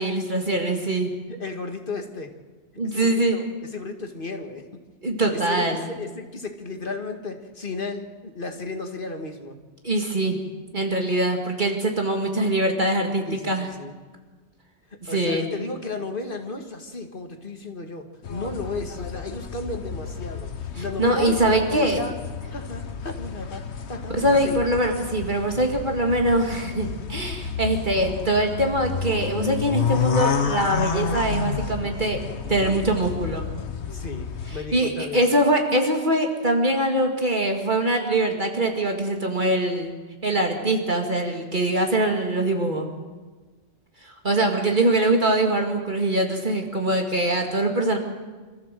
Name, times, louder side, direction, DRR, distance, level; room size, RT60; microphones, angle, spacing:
voice 1, 0.0-1.1 2.8-3.4 5.0-5.8 9.8-10.4 10.7-13.7 15.0-15.5 20.8-22.0 24.2-32.2 32.5-33.4 34.5-39.9 40.2-42.9 44.0-48.0, right 1 dB, 45° right, 3 dB, 2.3 m, -23 dB
voice 2, 1.3-2.3 2.8-3.5 3.7-4.7 5.3-9.6 13.3-14.0 14.9-21.4 21.7-22.2 22.5-24.6 33.8-35.2, left 3 dB, 50° left, 5 dB, 2.1 m, -34 dB
sound 1, 18.2-34.6, left 6 dB, 75° left, 1.4 m, -30 dB
25.5 x 14.5 x 7.6 m, 1.3 s
omnidirectional pair, 1.2 m